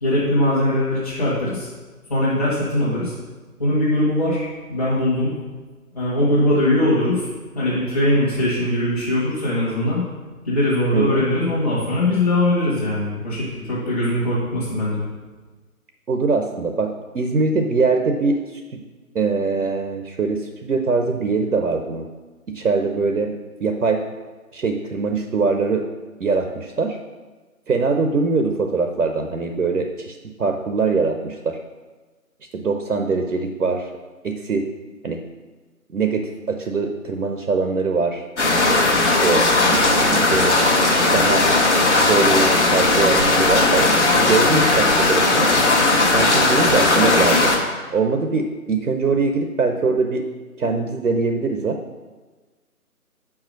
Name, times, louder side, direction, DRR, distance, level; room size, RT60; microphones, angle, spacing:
voice 1, 0.0-1.7 2.1-3.1 3.6-5.3 5.9-7.3 7.5-10.0 10.4-15.1, left 1 dB, 25° left, -8 dB, 1.2 m, -21 dB
voice 2, 10.9-11.2 16.1-18.8 19.1-22.1 22.5-23.3 23.6-24.0 24.5-25.9 26.2-27.0 27.7-31.6 32.5-33.9 34.2-34.6 35.0-35.2 35.9-38.3 39.0-40.6 41.1-41.5 41.9-45.5 46.1-47.5 47.9-50.2 50.6-51.8, right 4 dB, 75° right, 5 dB, 0.8 m, -22 dB
sound 1, 38.4-47.6, left 2 dB, 50° left, 1.2 m, -17 dB
5.5 x 4.8 x 6.4 m, 1.3 s
figure-of-eight pair, 160°, 45 cm